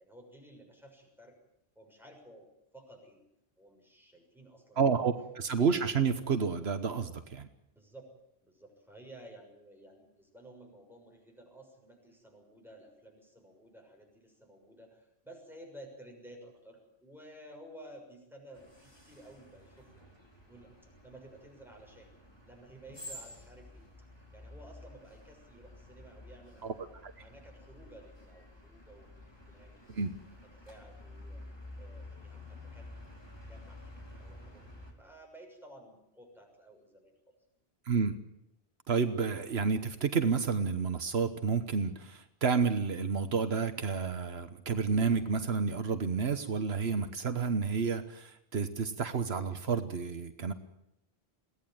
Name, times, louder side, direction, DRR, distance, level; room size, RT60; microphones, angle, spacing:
voice 1, 0.0-1.4 1.7-2.5 2.7-3.2 3.6-4.8 7.7-8.1 8.4-20.1 20.5-22.1 22.4-24.1 24.3-26.8 27.2-29.1 29.5-30.1 30.5-31.4 31.8-34.6 34.9-37.1, right 1 dB, ahead, 1 dB, 6.6 m, -54 dB
voice 2, 4.8-7.5 26.6-26.7 27.0-27.1 29.9-30.1 37.9-38.1 38.9-50.5, right 5 dB, 80° right, 9 dB, 1.4 m, -30 dB
sound 1, 18.5-34.9, left 1 dB, 25° left, 4.2 m, -51 dB
22.0 x 17.0 x 9.2 m, 0.82 s
omnidirectional pair, 1.1 m